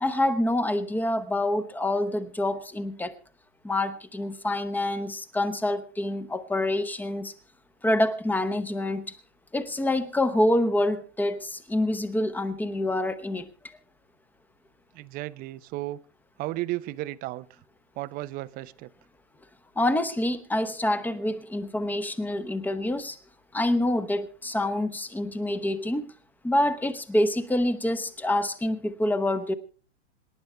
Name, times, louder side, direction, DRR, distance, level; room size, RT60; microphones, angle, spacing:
voice 1, 0.0-3.1 3.6-7.3 7.8-9.1 9.5-13.8 19.8-23.2 23.5-26.1 26.4-29.5, left 1 dB, 5° left, 0.9 m, -26 dB
voice 2, 14.9-16.0 16.4-17.6 18.0-18.9, right 17 dB, 25° right, 0.6 m, -34 dB
26.5 x 10.5 x 3.4 m
hypercardioid pair, 130°, 35 cm